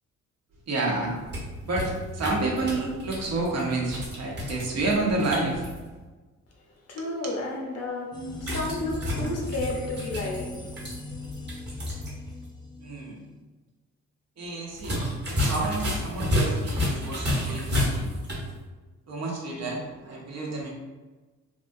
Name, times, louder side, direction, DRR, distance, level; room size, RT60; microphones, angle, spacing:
voice 1, 0.7-1.1 1.6-5.6 7.0-7.1 12.8-13.2 14.4-15.0 15.3-18.1 19.1-20.7, right 2 dB, 55° right, -2 dB, 0.9 m, -29 dB
sound 1, 1.0-5.8 8.4-12.1 12.4-12.5 14.7-18.5, left 1 dB, 35° right, 1.2 m, -31 dB
voice 2, 6.9-8.1 8.4-10.7, left 2 dB, 55° left, -1 dB, 0.9 m, -32 dB
sound 2, 8.1-13.4, left 2 dB, 15° left, 0.5 m, -39 dB
3.4 x 2.3 x 2.6 m, 1.3 s
cardioid pair, 90°, 30 cm